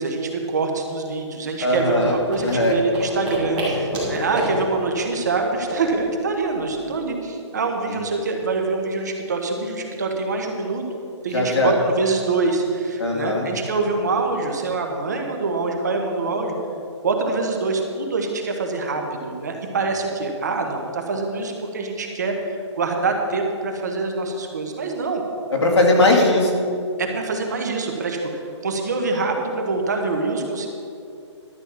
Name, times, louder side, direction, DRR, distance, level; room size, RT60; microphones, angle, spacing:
voice 1, 0.0-10.8 11.2-16.5 17.0-25.2 27.0-30.7, right 3 dB, 35° right, 3 dB, 1.2 m, -25 dB
voice 2, 1.6-2.8 7.9-8.0 11.3-11.8 13.0-13.5 25.5-26.5, left 2 dB, 65° left, -1 dB, 2.6 m, -19 dB
sound 1, 1.6-6.8, right 1 dB, 10° right, 3.3 m, -29 dB
12.5 x 6.7 x 7.2 m, 2.5 s
hypercardioid pair, 180°, 16 cm